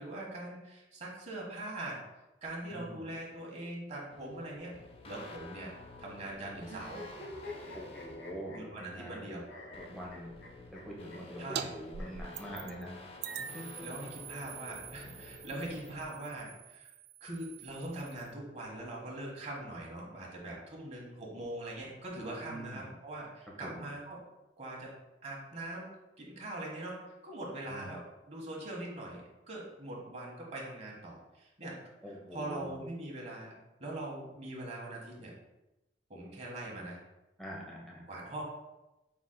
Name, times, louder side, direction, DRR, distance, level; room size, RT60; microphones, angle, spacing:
voice 1, 0.0-2.0 2.4-4.8 5.0-5.7 6.0-7.0 8.5-9.5 11.4-11.7 13.8-16.9 17.2-24.2 24.6-24.9 25.2-25.9 26.2-29.2 29.5-31.8 32.3-33.5 33.8-35.3 36.1-37.0 38.1-38.4, right 1 dB, 40° right, -3 dB, 1.1 m, -42 dB
voice 2, 2.7-3.1 7.7-9.2 9.7-10.3 10.7-13.0 13.5-13.8 22.4-22.9 23.6-23.9 27.7-27.9 32.0-32.7 37.4-38.0, equal, ahead, -4 dB, 1.0 m, -44 dB
sound 1, 4.1-16.1, left 2 dB, 35° left, 0.5 m, -51 dB
sound 2, 6.6-9.2 9.5-10.8 11.1-11.2 11.5-11.6 11.9-12.1 13.1-14.1, left 2 dB, 90° left, 1.2 m, -48 dB
sound 3, 11.6-11.7 11.9-12.8 13.2-18.3, right 8 dB, 65° right, 0.3 m, -44 dB
6.0 x 3.7 x 2.2 m, 0.97 s
head